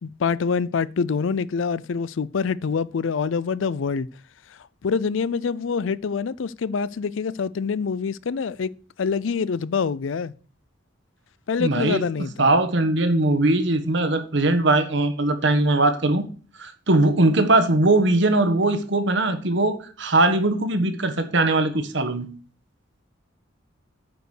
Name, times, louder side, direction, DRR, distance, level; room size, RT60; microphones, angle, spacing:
voice 1, 0.0-4.1 4.8-8.7 9.0-10.3 11.5-12.5, left 5 dB, 75° left, 0.5 m, -25 dB
voice 2, 11.6-16.3 16.6-22.3, right 2 dB, 65° right, 1.3 m, -20 dB
9.2 x 5.1 x 6.5 m
head